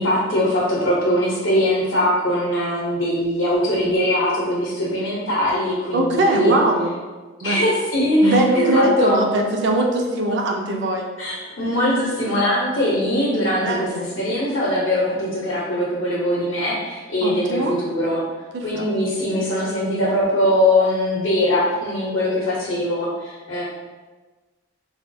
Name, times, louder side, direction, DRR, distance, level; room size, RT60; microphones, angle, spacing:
voice 1, 0.0-6.6 7.4-9.2 11.2-18.2 18.6-23.6, left 1 dB, 70° left, -6 dB, 0.7 m, -21 dB
voice 2, 5.9-6.9 7.4-7.6 8.2-11.1 13.6-14.1 17.2-17.7 18.5-18.8, right 1 dB, 60° right, 2 dB, 0.4 m, -20 dB
3.4 x 2.2 x 2.6 m, 1.3 s
head